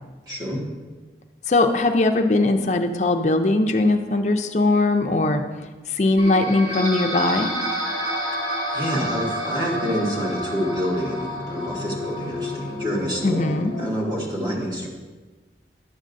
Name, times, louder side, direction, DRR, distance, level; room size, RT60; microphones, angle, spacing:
voice 1, 0.3-0.7 8.7-14.9, equal, 25° right, -3 dB, 1.4 m, -27 dB
voice 2, 1.5-5.4 5.9-7.5 13.2-13.7, left 2 dB, 40° left, 6 dB, 0.5 m, -20 dB
sound 1, 6.2-13.8, equal, 55° right, 2.6 m, -29 dB
11.5 x 7.4 x 2.6 m, 1.3 s
head